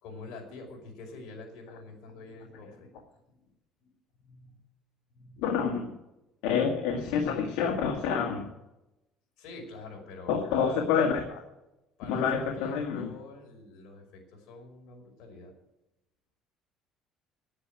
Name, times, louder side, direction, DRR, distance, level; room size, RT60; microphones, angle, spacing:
voice 1, 0.0-2.9 3.3-3.4 3.8-3.9 4.2-4.6 5.1-5.4 9.4-11.1 12.0-15.5, left 3 dB, 75° left, 1 dB, 5.3 m, -46 dB
voice 2, 5.4-5.9 6.4-8.5 10.3-11.2 12.1-13.1, left 6 dB, 90° left, 2 dB, 1.9 m, -27 dB
10.0 x 9.7 x 8.9 m, 0.92 s
cardioid pair, 125°, 0 cm